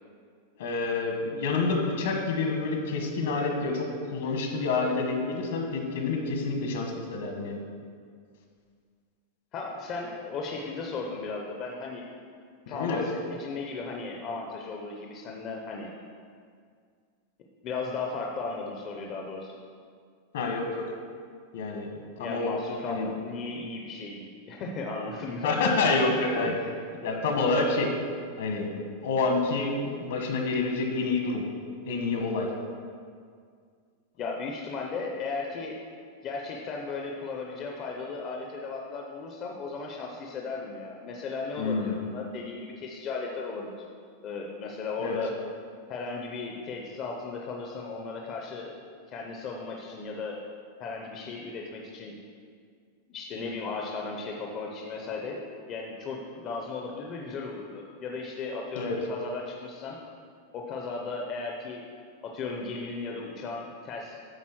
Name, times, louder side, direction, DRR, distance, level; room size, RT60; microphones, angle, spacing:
voice 1, 0.6-7.6 12.7-13.0 20.3-20.8 21.5-21.9 22.2-22.5 22.8-23.1 25.4-26.5 27.0-27.9 28.4-31.4 31.8-32.5 41.6-42.0 45.0-45.2 58.8-59.0, left 3 dB, 65° left, 2 dB, 1.5 m, -28 dB
voice 2, 9.5-12.1 12.7-15.9 17.6-19.5 22.2-25.6 26.3-26.7 34.2-35.8 36.2-43.9 44.2-45.3 45.9-48.7 49.1-50.4 50.8-52.2 53.1-55.4 55.7-60.0 60.5-61.8 62.2-64.2, left 4 dB, 25° left, 0 dB, 0.6 m, -36 dB
8.8 x 3.9 x 6.1 m, 2.1 s
supercardioid pair, 175°, 0 cm